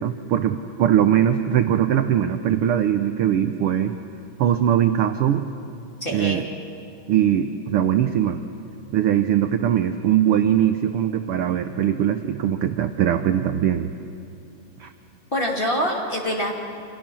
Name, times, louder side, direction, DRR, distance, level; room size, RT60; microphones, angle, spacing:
voice 1, 0.0-4.0 4.4-5.4 6.1-6.5 7.1-8.4 8.9-13.9 14.8-14.9, right 10 dB, 70° right, 8 dB, 1.4 m, -21 dB
voice 2, 6.0-6.4 15.3-16.6, equal, 20° left, 0 dB, 2.2 m, -25 dB
30.0 x 25.5 x 6.2 m, 2.5 s
omnidirectional pair, 3.3 m